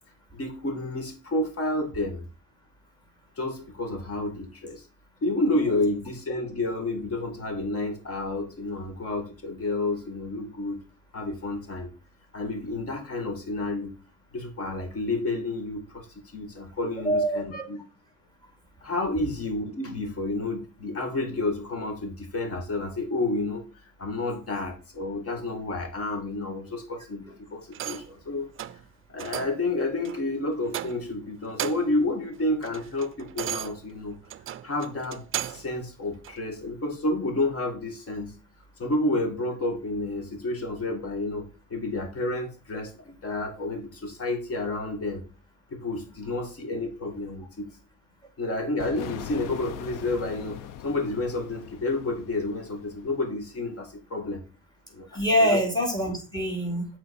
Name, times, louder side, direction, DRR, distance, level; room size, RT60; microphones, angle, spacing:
voice 1, 0.3-2.2 3.4-4.8 5.2-10.8 11.1-11.9 12.3-13.9 14.3-17.8 18.8-23.6 24.0-28.5 29.1-34.2 34.6-38.3 38.8-41.4 41.7-45.2 45.7-47.7 48.4-54.4 54.9-55.1 55.4-55.6, left 2 dB, 45° left, 5 dB, 2.2 m, -30 dB
voice 2, 17.0-17.4 55.1-56.9, equal, 10° left, 1 dB, 3.1 m, -24 dB
sound 1, 27.7-28.2 28.6-28.8 29.2-29.6 30.0-30.2 30.7-31.2 31.5-32.0 32.4-35.7 36.2-36.4, right 12 dB, 40° right, 0.5 m, -36 dB
big explosion, 48.8-53.5, left 10 dB, 70° left, 0.8 m, -41 dB
7.8 x 4.4 x 4.4 m, 0.33 s
cardioid pair, 100°, 33 cm